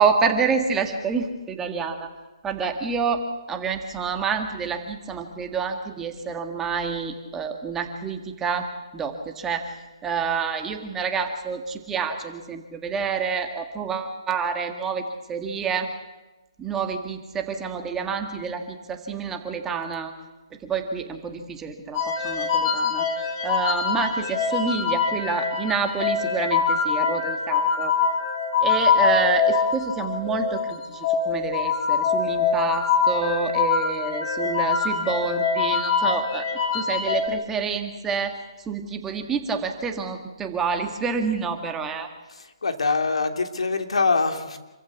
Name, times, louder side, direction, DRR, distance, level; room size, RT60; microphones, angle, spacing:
voice 1, 0.0-2.1 2.4-8.7 8.9-9.8 10.0-15.9 16.6-20.1 20.6-23.1 23.4-27.9 28.6-42.1, right 5 dB, 10° right, 5 dB, 1.8 m, -28 dB
sound 1, 22.0-37.3, left 5 dB, 35° left, 4.1 m, -24 dB
voice 2, 42.3-44.6, left 4 dB, 75° left, 6 dB, 2.9 m, -24 dB
27.0 x 15.0 x 8.3 m, 1.1 s
hypercardioid pair, 150°, 3 cm